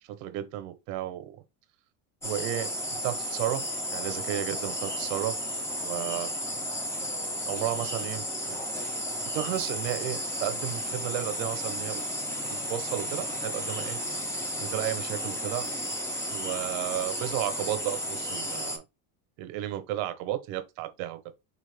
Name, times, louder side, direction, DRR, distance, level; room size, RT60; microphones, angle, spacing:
voice 1, 0.1-1.4 2.2-3.7 3.9-5.4 5.8-6.3 7.5-8.6 9.3-12.0 12.5-14.0 14.6-15.7 16.3-18.8 19.4-21.2, right 13 dB, 65° right, 0.8 m, -33 dB
sound 1, 2.2-18.8, equal, 5° left, 0.5 m, -33 dB
4.2 x 2.5 x 3.3 m
cardioid pair, 140°, 41 cm